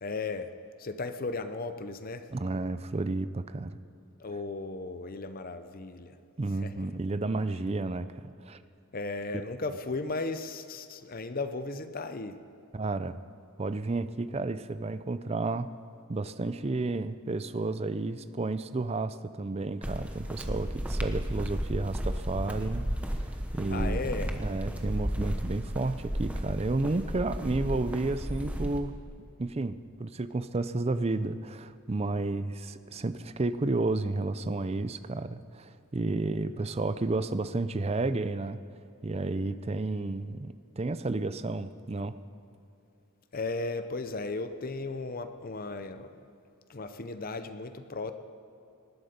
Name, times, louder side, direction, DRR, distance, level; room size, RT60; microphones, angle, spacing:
voice 1, 0.0-0.5 0.8-2.3 4.2-6.2 6.6-6.7 8.9-12.4 23.7-24.4 43.3-46.2 46.7-48.1, left 3 dB, 40° left, 10 dB, 0.7 m, -35 dB
voice 2, 2.3-3.8 6.4-8.6 12.7-13.2 13.6-15.7 16.1-29.0 29.4-38.6 39.0-42.1, right 2 dB, 30° right, 13 dB, 0.5 m, -32 dB
sound 1, 19.8-28.8, equal, 5° right, 0.9 m, -33 dB
19.0 x 12.0 x 5.2 m, 2.7 s
head